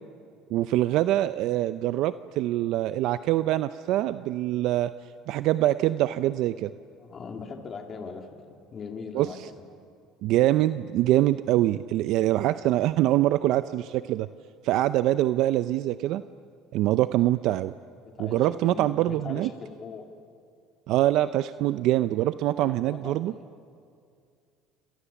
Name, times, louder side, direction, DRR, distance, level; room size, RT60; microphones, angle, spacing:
voice 1, 0.5-4.9 5.3-6.7 9.1-9.3 10.2-14.3 14.6-16.2 16.7-17.7 18.2-19.5 20.9-23.3, right 14 dB, 65° right, 13 dB, 0.6 m, -24 dB
voice 2, 7.0-9.7 16.9-17.0 18.0-20.1 22.5-23.4, left 5 dB, 35° left, 3 dB, 2.8 m, -40 dB
28.5 x 27.5 x 7.2 m, 2.4 s
supercardioid pair, 105°, 0 cm